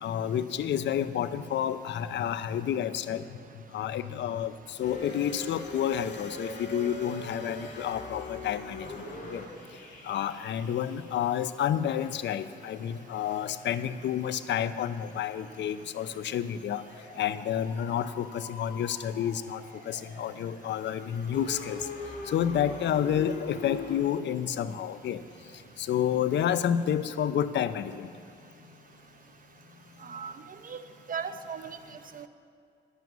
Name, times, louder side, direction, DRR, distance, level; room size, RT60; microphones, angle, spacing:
voice 1, 0.0-3.3 3.7-8.9 9.3-9.4 10.0-16.9 17.2-21.9 22.3-25.2 25.8-28.1, left 9 dB, 65° left, 13 dB, 0.6 m, -30 dB
sound 1, 4.8-11.4 11.8-24.0, left 2 dB, 40° left, 3.9 m, -43 dB
voice 2, 30.0-30.8 31.1-32.3, right 6 dB, 45° right, 10 dB, 0.8 m, -38 dB
10.5 x 8.2 x 9.4 m, 2.3 s
cardioid pair, 90°, 20 cm